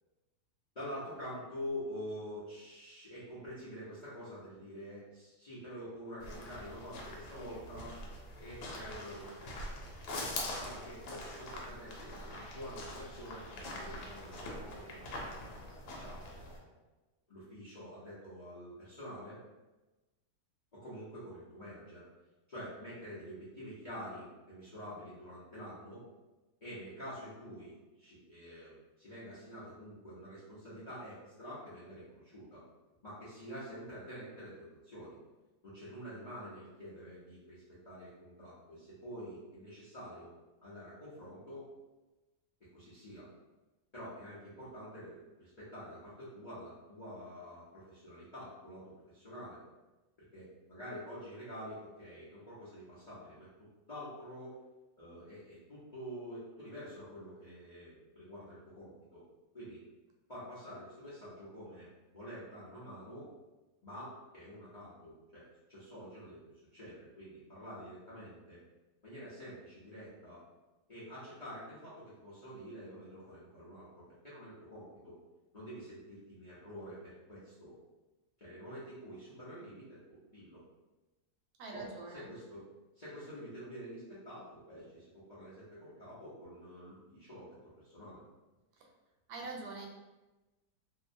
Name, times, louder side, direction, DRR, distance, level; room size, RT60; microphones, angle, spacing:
voice 1, 0.7-8.0 8.4-9.9 10.4-15.6 15.9-16.8 17.3-19.4 20.7-22.0 22.5-26.0 26.6-32.6 33.0-35.2 35.6-40.3 40.6-41.7 42.7-43.3 43.9-49.6 50.3-53.5 53.9-54.6 55.0-59.2 59.5-59.8 60.3-63.3 63.8-65.4 65.7-66.4 66.7-68.6 69.0-70.4 70.9-75.2 75.5-77.7 78.4-80.6 81.7-82.7 83.0-87.6 87.8-88.2, equal, 55° left, -10 dB, 0.4 m, -47 dB
sound 1, 6.2-16.6, left 1 dB, 80° left, 1.1 m, -44 dB
voice 2, 81.6-82.3 89.3-89.9, right 3 dB, 75° right, 0 dB, 1.0 m, -43 dB
2.8 x 2.0 x 2.5 m, 1.1 s
omnidirectional pair, 1.7 m